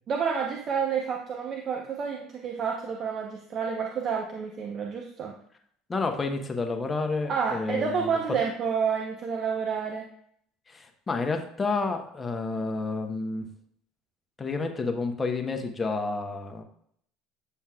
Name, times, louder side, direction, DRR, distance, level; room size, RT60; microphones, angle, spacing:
voice 1, 0.1-5.3 7.3-10.1, right 6 dB, 45° right, 1 dB, 0.9 m, -29 dB
voice 2, 5.9-8.1 10.7-13.5 14.4-16.6, left 3 dB, 20° left, 4 dB, 1.1 m, -30 dB
8.9 x 7.0 x 2.4 m, 0.67 s
figure-of-eight pair, 65°, 0 cm